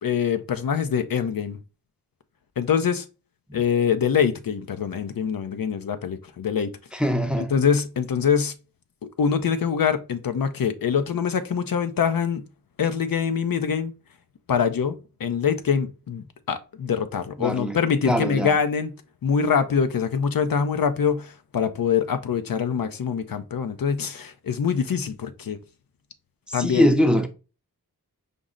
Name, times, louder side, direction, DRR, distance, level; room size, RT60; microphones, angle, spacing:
voice 1, 0.0-1.6 2.6-3.0 3.5-6.7 7.5-8.5 9.2-12.4 12.8-13.9 14.5-18.9 19.2-25.6 26.5-26.9, left 7 dB, 65° left, 0.5 m, -24 dB
voice 2, 6.9-7.5 17.4-17.8 18.0-18.5 26.5-27.3, equal, 5° right, 0.6 m, -22 dB
5.2 x 2.0 x 3.6 m
cardioid pair, 45°, 38 cm